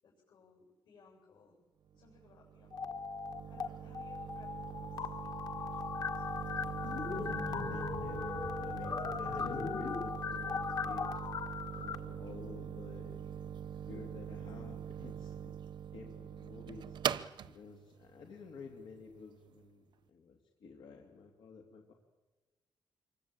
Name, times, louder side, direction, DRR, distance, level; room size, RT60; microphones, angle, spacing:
voice 1, 0.0-1.6 1.9-3.0 3.5-5.1 5.4-6.3 6.6-6.7 7.7-7.8 8.2-8.3, left 4 dB, 70° left, -2 dB, 7.7 m, -62 dB
sound 1, 1.9-19.6, right 9 dB, 65° right, 0.9 m, -43 dB
sound 2, 2.7-3.7 3.9-12.0, left 6 dB, 50° left, 1.6 m, -38 dB
voice 2, 7.1-11.2 11.8-13.5 13.9-15.6 15.9-17.0 17.5-21.9, left 4 dB, 90° left, 2 dB, 2.9 m, -50 dB
26.5 x 24.0 x 8.9 m, 1.3 s
wide cardioid pair, 170°, 8 cm